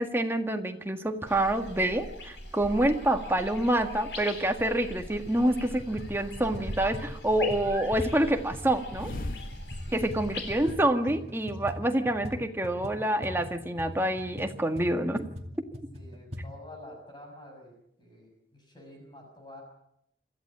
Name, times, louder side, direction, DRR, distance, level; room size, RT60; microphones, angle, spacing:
voice 1, 0.0-9.1 9.9-15.2 15.8-15.9, right 1 dB, 15° right, 5 dB, 1.7 m, -27 dB
sound 1, 1.3-10.7, left 1 dB, 80° left, 4.3 m, -41 dB
sound 2, 4.1-4.2 4.7-5.6 6.1-7.0 7.2-10.3 10.6-10.7 10.9-11.7, left 2 dB, 50° left, 0.9 m, -42 dB
sound 3, 5.2-5.5 5.8-10.8 11.1-16.4, left 1 dB, 35° right, 2.6 m, -41 dB
voice 2, 15.9-19.6, left 1 dB, 25° left, 2 dB, 6.7 m, -49 dB
26.0 x 14.5 x 8.6 m, 0.76 s
head